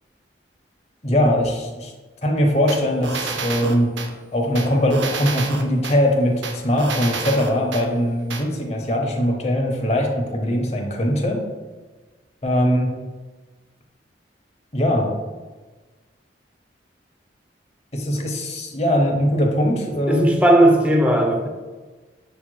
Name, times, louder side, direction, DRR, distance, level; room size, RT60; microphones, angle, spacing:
voice 1, 1.0-1.9 2.2-4.0 4.3-11.4 12.4-13.0 14.7-15.1 17.9-20.2, equal, 35° left, 1 dB, 0.7 m, -21 dB
sound 1, 2.7-4.1 4.5-6.0 6.4-7.8 8.3-8.4, right 5 dB, 75° right, 0.5 m, -29 dB
voice 2, 20.1-21.5, right 1 dB, 10° right, 2 dB, 0.4 m, -16 dB
6.9 x 3.0 x 2.2 m, 1.3 s
head